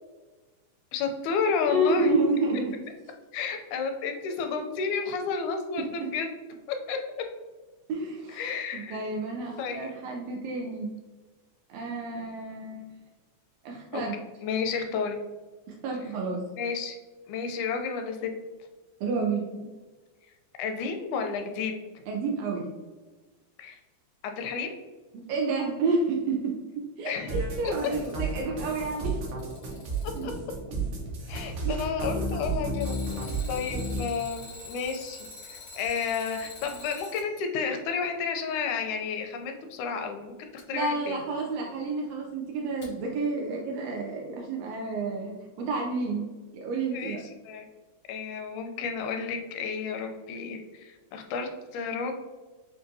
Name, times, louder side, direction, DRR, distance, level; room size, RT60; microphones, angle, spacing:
voice 1, 0.9-2.1 3.3-6.3 6.9-7.0 8.3-9.0 9.6-9.9 13.9-14.0 14.4-15.2 16.6-17.0 17.3-18.3 20.6-21.8 23.6-23.8 24.2-24.7 27.1-27.4 30.2-30.3 31.3-33.0 33.5-41.2 46.9-47.2 47.5-47.6 48.1-52.1, left 5 dB, 85° left, 5 dB, 2.0 m, -31 dB
voice 2, 1.7-2.7 5.8-6.1 7.9-8.5 8.7-10.9 11.7-13.0 13.6-14.2 15.7-16.4 19.0-19.7 22.1-22.7 25.3-29.2 30.2-30.3 31.6-31.8 33.3-33.5 40.7-46.2 46.5-47.2, right 3 dB, 80° right, -1 dB, 1.5 m, -30 dB
sound 1, 27.3-34.0, right 3 dB, 65° right, 1.5 m, -32 dB
Alarm, 27.4-28.4 29.0-30.4 32.7-37.3 40.6-40.7 42.8-42.9, left 2 dB, 70° left, 0.7 m, -45 dB
6.8 x 2.5 x 2.6 m, 1.3 s
omnidirectional pair, 3.4 m